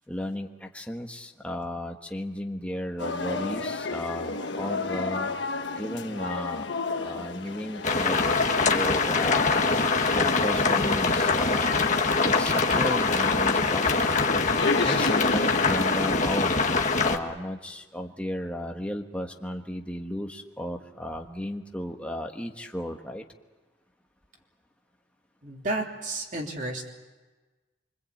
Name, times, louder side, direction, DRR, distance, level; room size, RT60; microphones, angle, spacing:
voice 1, 0.1-5.4 5.8-6.7 7.0-8.2 8.6-9.5 10.1-11.8 12.2-14.2 14.8-16.5 17.0-23.2, left 1 dB, 5° left, 2 dB, 1.3 m, -34 dB
sound 1, 3.0-16.1, left 3 dB, 65° left, 1.4 m, -32 dB
sound 2, 7.8-17.2, left 4 dB, 40° left, 1.6 m, -24 dB
voice 2, 25.4-26.9, right 2 dB, 40° right, 0 dB, 3.3 m, -32 dB
26.0 x 24.5 x 8.6 m, 1.3 s
head